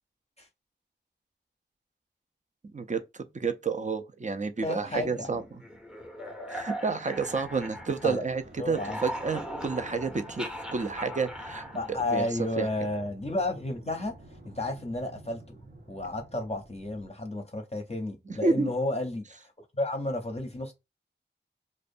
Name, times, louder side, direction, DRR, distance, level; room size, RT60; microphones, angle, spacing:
voice 1, 3.3-5.6 6.5-12.3 12.6-12.7 18.3-18.7, right 4 dB, 40° right, 0.4 m, -30 dB
voice 2, 4.6-5.3 8.0-8.2 8.6-9.0 11.7-14.1 14.4-15.6 15.9-20.7, left 2 dB, 35° left, 0.6 m, -32 dB
sound 1, 4.8-8.3 8.6-12.6, equal, 5° right, 0.7 m, -40 dB
sound 2, 7.1-17.1, right 1 dB, 75° right, 0.8 m, -51 dB
2.5 x 2.2 x 2.5 m
wide cardioid pair, 45°, 19 cm